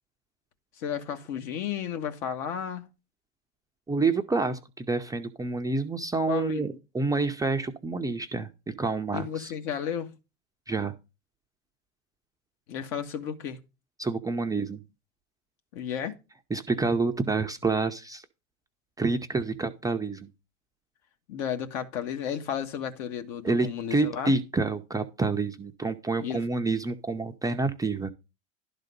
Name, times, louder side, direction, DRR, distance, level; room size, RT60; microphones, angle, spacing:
voice 1, 0.8-2.9 6.3-6.8 9.1-10.2 12.7-13.6 15.7-16.2 21.3-24.3 26.2-26.4, left 8 dB, 60° left, 1.5 m, -33 dB
voice 2, 3.9-9.5 10.7-10.9 14.0-14.8 16.5-18.2 19.0-20.3 23.4-28.1, right 3 dB, 10° right, 0.6 m, -28 dB
11.5 x 4.0 x 5.2 m
hypercardioid pair, 100°, 38 cm